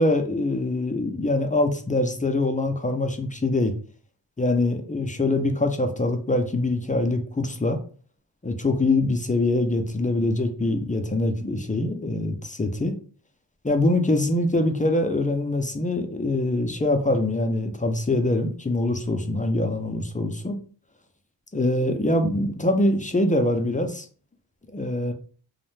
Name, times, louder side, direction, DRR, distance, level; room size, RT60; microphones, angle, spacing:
voice 1, 0.0-3.7 4.4-7.8 8.4-12.9 13.6-20.6 21.5-24.1 24.7-25.1, left 2 dB, 20° left, 5 dB, 0.3 m, -24 dB
2.5 x 2.1 x 3.0 m, 0.41 s
wide cardioid pair, 55°, 45 cm